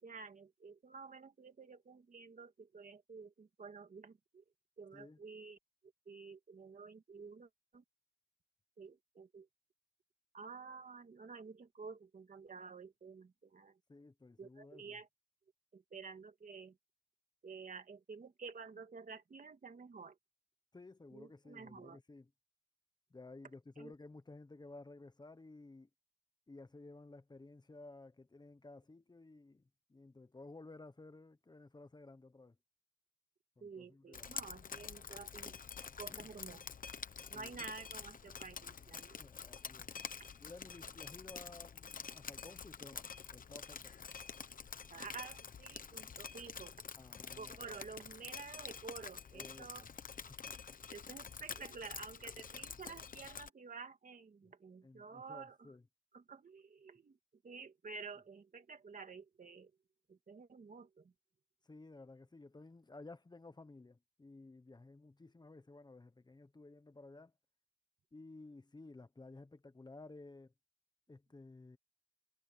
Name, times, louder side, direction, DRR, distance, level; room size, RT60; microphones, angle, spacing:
voice 1, 0.0-4.4 4.8-5.6 6.1-7.8 8.8-9.5 10.3-13.8 14.4-15.1 15.7-16.8 17.4-20.2 21.1-22.0 23.8-23.9 33.6-35.6 36.0-36.6 37.3-39.2 40.2-40.3 44.9-46.7 47.3-49.9 50.9-55.7 56.1-57.2 57.4-59.7 60.1-61.1, right 4 dB, 70° right, 2.5 m, -51 dB
voice 2, 13.9-15.0 20.7-22.3 23.1-25.9 26.5-32.6 33.6-34.3 35.8-36.3 37.3-37.6 39.2-39.9 40.4-43.9 47.0-47.8 49.3-49.9 50.3-50.6 54.4-54.5 54.8-55.8 61.6-67.3 68.1-70.5 71.1-71.8, left 2 dB, 30° left, 1.1 m, -55 dB
Drip, 34.1-53.5, left 6 dB, 75° left, 1.0 m, -48 dB
wide cardioid pair, 125°, 14 cm